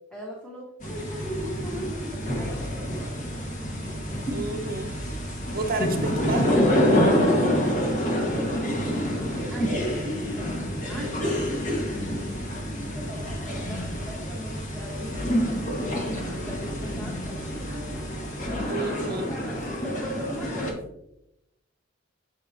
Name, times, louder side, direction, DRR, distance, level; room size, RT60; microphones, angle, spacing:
voice 1, 0.1-3.2 9.2-10.1 10.8-11.5 12.9-17.7 18.1-18.4 19.3-21.0, right 1 dB, 5° left, -4 dB, 1.2 m, -39 dB
sound 1, 0.8-20.7, equal, 40° left, 1.4 m, -27 dB
voice 2, 4.3-5.0 5.5-6.5 18.7-19.3, right 3 dB, 50° right, 6 dB, 0.8 m, -30 dB
6.8 x 6.4 x 2.7 m, 0.83 s
head